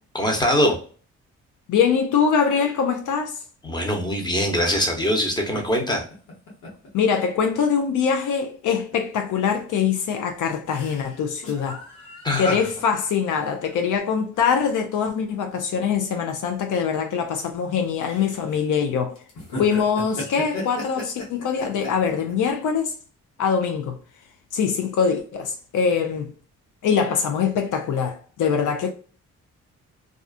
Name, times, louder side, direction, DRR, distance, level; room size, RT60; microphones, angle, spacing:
voice 1, 0.1-0.7 3.6-6.0 12.2-12.6, equal, 15° left, 0.9 m, -22 dB
voice 2, 1.7-3.4 6.9-11.8 12.4-19.2 19.6-22.9 23.4-24.0 24.5-26.3 26.8-28.9, left 6 dB, 70° left, 0.5 m, -23 dB
sound 1, 5.3-5.6 5.9-6.9 7.2-7.3 7.8-8.1 8.9-9.0 9.4-9.6 10.0-15.1 15.5-15.6 16.3-16.6 17.2-17.7 18.1-18.7 19.2-22.3, left 2 dB, 85° left, 1.1 m, -36 dB
2.4 x 2.4 x 2.4 m
supercardioid pair, 55°, 32 cm